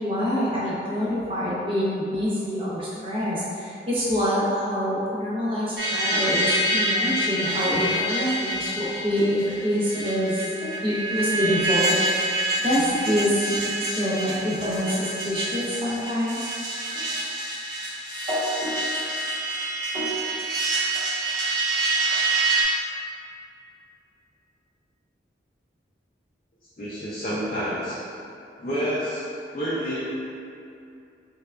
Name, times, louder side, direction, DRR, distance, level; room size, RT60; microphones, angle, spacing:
voice 1, 0.0-10.5 10.8-12.3 12.6-16.5, equal, 30° right, -8 dB, 0.7 m, -26 dB
sound 1, 5.8-22.6, right 1 dB, 45° right, 1.1 m, -26 dB
voice 2, 26.8-28.0 28.6-29.3 29.5-30.0, equal, 40° left, -9 dB, 0.5 m, -28 dB
3.7 x 3.3 x 2.3 m, 2.6 s
head